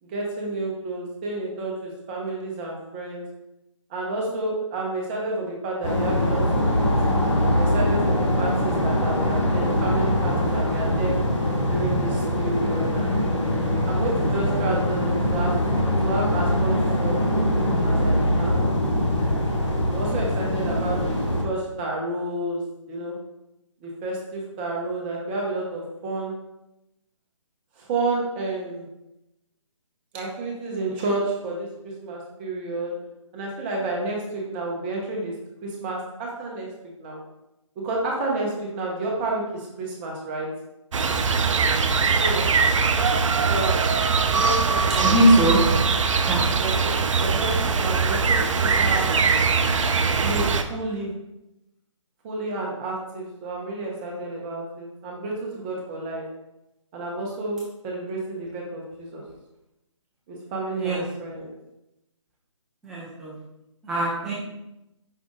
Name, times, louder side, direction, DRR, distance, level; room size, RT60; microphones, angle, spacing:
voice 1, 0.0-3.3 3.9-6.9 7.5-11.2 11.7-13.2 13.9-15.5 16.0-16.7 17.0-17.2 17.8-18.7 19.9-23.1 23.8-26.3 27.8-28.9 30.1-32.9 33.3-35.3 35.6-36.7 37.0-37.2 37.8-40.5 42.1-42.5 43.5-43.8 44.3-45.1 46.6-46.9 47.2-47.5 47.8-49.1 50.2-51.1 52.2-56.2 56.9-59.2 60.3-61.5, right 2 dB, 20° right, -2 dB, 0.8 m, -30 dB
sound 1, 5.8-21.4, left 1 dB, 65° left, 1.1 m, -23 dB
sound 2, 40.9-50.6, right 5 dB, 70° right, 0.4 m, -21 dB
voice 2, 45.0-45.6 46.3-46.4 60.8-61.0 62.8-63.4 63.8-64.3, right 1 dB, 5° right, -7 dB, 0.4 m, -20 dB
5.3 x 2.5 x 3.6 m, 0.91 s
figure-of-eight pair, 150°, 17 cm